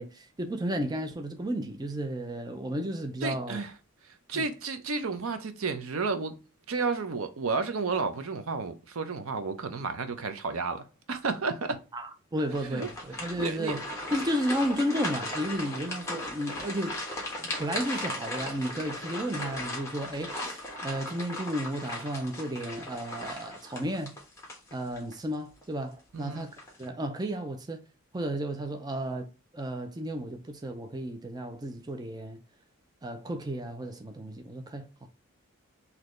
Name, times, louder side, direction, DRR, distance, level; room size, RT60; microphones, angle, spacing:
voice 1, 0.0-3.6 4.3-4.4 11.9-13.8 14.1-17.0 17.4-24.1 24.7-26.5 26.8-27.8 28.1-29.3 29.5-32.4 33.0-35.1, equal, 20° right, 0.4 m, -33 dB
voice 2, 3.2-3.7 4.0-6.4 6.7-11.8 12.7-12.9 13.4-13.8 26.1-26.4, right 4 dB, 75° right, 0.7 m, -32 dB
sound 1, 12.5-25.1 25.6-25.8 26.4-26.8, left 1 dB, 15° left, 1.3 m, -37 dB
4.2 x 2.8 x 3.0 m
head